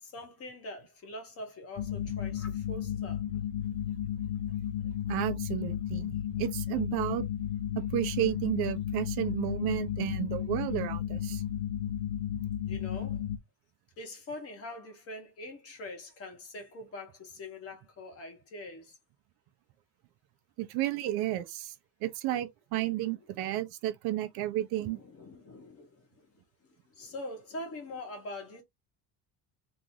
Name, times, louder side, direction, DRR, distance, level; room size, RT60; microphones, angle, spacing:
voice 1, 0.0-3.2 12.6-13.2 14.0-18.9 22.8-22.9 24.8-28.6, left 2 dB, 35° left, 1.3 m, -44 dB
sound 1, 1.8-13.4, left 10 dB, 80° left, 0.7 m, -33 dB
voice 2, 5.1-7.3 7.7-11.4 20.6-21.7 22.0-25.0, right 14 dB, 65° right, 0.6 m, -32 dB
3.0 x 2.5 x 3.7 m
cardioid pair, 170°, 42 cm